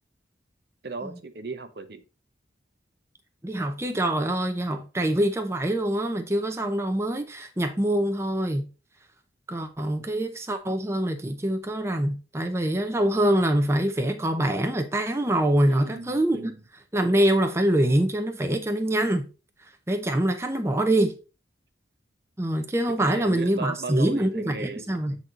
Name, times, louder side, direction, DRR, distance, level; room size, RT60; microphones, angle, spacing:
voice 1, 0.8-2.0 9.8-9.9 15.6-16.6 23.0-25.0, right 3 dB, 60° right, 0.8 m, -36 dB
voice 2, 3.4-8.7 9.5-16.5 16.9-19.3 19.9-21.1 22.4-25.2, right 1 dB, 15° right, 0.6 m, -24 dB
7.8 x 4.1 x 3.7 m
head